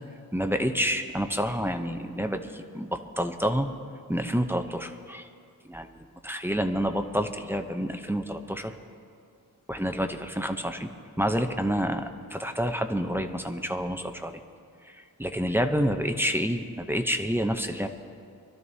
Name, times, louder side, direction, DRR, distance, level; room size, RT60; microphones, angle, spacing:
voice 1, 0.3-3.7 4.1-5.3 5.7-8.7 9.7-10.9 11.2-14.3 14.8-17.9, equal, 5° right, 5 dB, 0.6 m, -28 dB
23.0 x 12.5 x 2.7 m, 2.3 s
wide cardioid pair, 115°, 39 cm